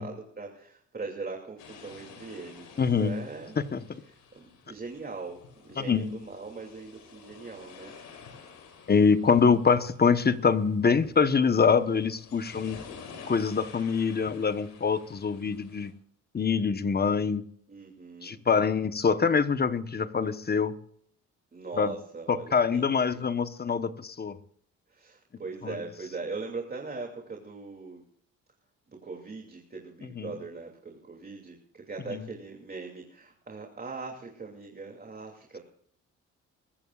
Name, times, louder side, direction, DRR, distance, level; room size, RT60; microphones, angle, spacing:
voice 1, 0.0-3.6 4.1-7.9 9.1-9.2 17.7-18.4 21.5-23.2 24.9-28.0 28.9-35.6, right 4 dB, 30° right, 2.9 m, -40 dB
sound 1, 1.6-15.9, left 6 dB, 85° left, 4.3 m, -50 dB
voice 2, 2.8-3.2 3.7-3.8 5.8-6.1 8.9-12.8 13.3-15.9 16.3-17.4 18.2-20.8 21.8-21.9 22.3-24.4 25.6-25.8 30.2-30.3 32.1-32.2, left 5 dB, 30° left, 1.2 m, -25 dB
23.0 x 14.5 x 2.5 m
cardioid pair, 90°, 30 cm